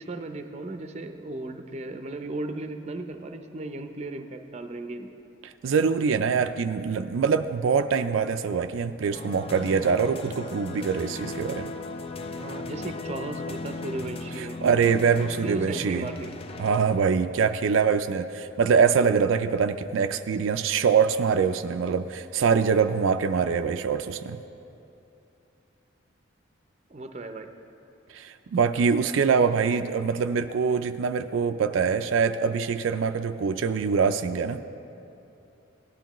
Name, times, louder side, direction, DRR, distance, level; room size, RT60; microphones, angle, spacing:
voice 1, 0.0-5.1 12.4-14.6 15.4-16.3 26.9-27.5, right 2 dB, 35° right, 6 dB, 0.6 m, -36 dB
voice 2, 5.4-11.7 14.4-16.1 16.6-24.4 28.1-34.6, right 6 dB, 80° right, 8 dB, 0.4 m, -24 dB
sound 1, 9.1-17.4, left 3 dB, 30° left, 0.4 m, -37 dB
17.5 x 11.5 x 3.0 m, 2.8 s
head